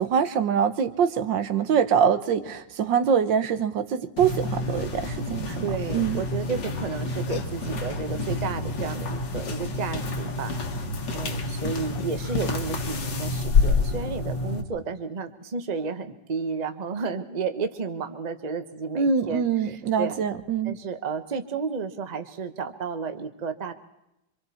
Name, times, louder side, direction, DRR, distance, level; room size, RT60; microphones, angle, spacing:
voice 1, 0.0-5.6 5.9-6.2 18.9-20.7, right 7 dB, 75° right, 10 dB, 1.7 m, -24 dB
sound 1, 4.2-14.6, left 3 dB, 70° left, 2.4 m, -28 dB
voice 2, 5.6-10.5 11.1-20.2 20.6-23.7, right 5 dB, 25° right, 8 dB, 1.1 m, -32 dB
sound 2, 7.0-7.1 7.2-8.3 9.5-10.5 11.9-12.7, left 7 dB, 85° left, 1.9 m, -43 dB
27.0 x 25.0 x 4.3 m, 0.88 s
omnidirectional pair, 2.0 m